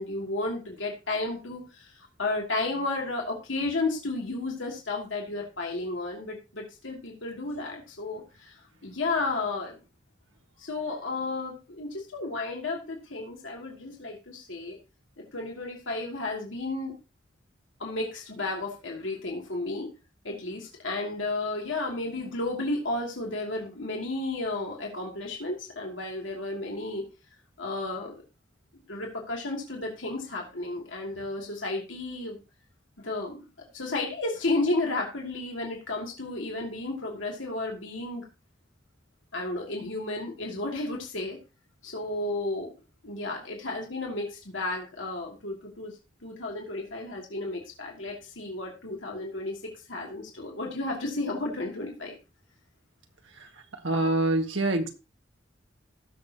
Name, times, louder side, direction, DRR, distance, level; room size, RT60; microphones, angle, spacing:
voice 1, 0.0-1.9 2.2-9.8 10.6-14.8 15.3-16.9 17.8-19.9 20.2-27.0 27.6-28.1 28.7-32.4 33.0-33.4 33.7-38.2 39.3-41.4 41.8-42.7 43.0-45.9 46.2-49.6 49.9-52.1, left 2 dB, 85° left, 0 dB, 2.7 m, -33 dB
voice 2, 53.8-54.9, right 2 dB, 75° right, 4 dB, 1.9 m, -25 dB
18.0 x 6.7 x 2.9 m, 0.30 s
head